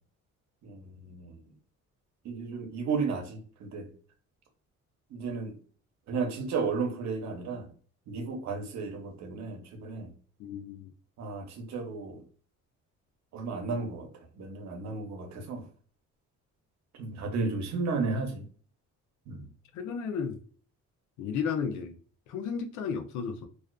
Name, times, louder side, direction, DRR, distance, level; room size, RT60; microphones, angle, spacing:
voice 1, 0.6-1.4 2.2-3.9 5.1-5.6 6.1-7.7 8.1-10.1 11.2-12.2 13.3-14.1 14.3-15.7 17.0-18.4 19.3-19.5, right 4 dB, 65° right, 0.7 m, -33 dB
voice 2, 10.4-10.9 19.7-20.4 21.2-22.0 22.3-23.5, left 6 dB, 85° left, 0.4 m, -33 dB
2.4 x 2.3 x 2.2 m
cardioid pair, 115°, 29 cm